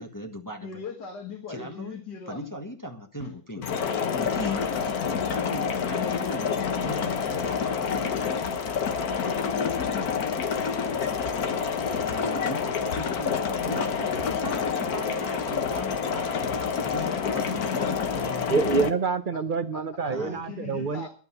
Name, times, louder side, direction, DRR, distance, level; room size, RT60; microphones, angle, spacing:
voice 1, 0.0-0.8 1.5-2.0 2.3-3.7 4.2-4.6 5.3-8.4 11.9-18.5 20.1-20.4, equal, 10° left, 1.3 m, -38 dB
voice 2, 0.6-2.5 3.2-4.1 4.5-5.3 6.6-6.7 8.2-8.3 19.7-21.1, left 5 dB, 85° left, 2.4 m, -39 dB
sound 1, 3.6-18.9, left 6 dB, 65° left, 1.6 m, -28 dB
voice 3, 18.5-21.1, right 5 dB, 40° right, 0.8 m, -27 dB
12.0 x 8.5 x 7.2 m
omnidirectional pair, 1.7 m